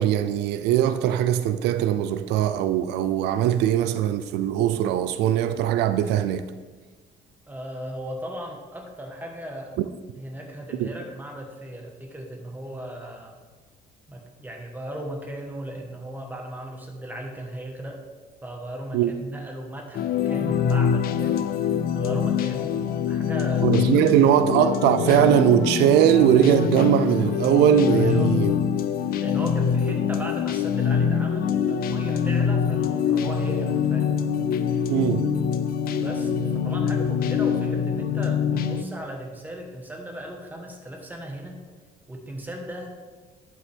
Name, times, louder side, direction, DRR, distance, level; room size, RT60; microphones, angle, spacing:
voice 1, 0.0-6.5 9.8-9.9 10.8-10.9 18.9-19.1 23.6-28.5 34.9-35.3, right 10 dB, 85° right, 0.4 m, -20 dB
voice 2, 7.5-9.8 10.2-13.3 14.1-18.0 18.4-22.8 23.1-23.7 27.9-34.2 35.9-41.6 42.1-42.9, right 1 dB, 10° right, 1.4 m, -37 dB
sound 1, 19.9-38.8, left 7 dB, 60° left, 0.5 m, -24 dB
11.5 x 5.5 x 3.6 m
cardioid pair, 110°, 17 cm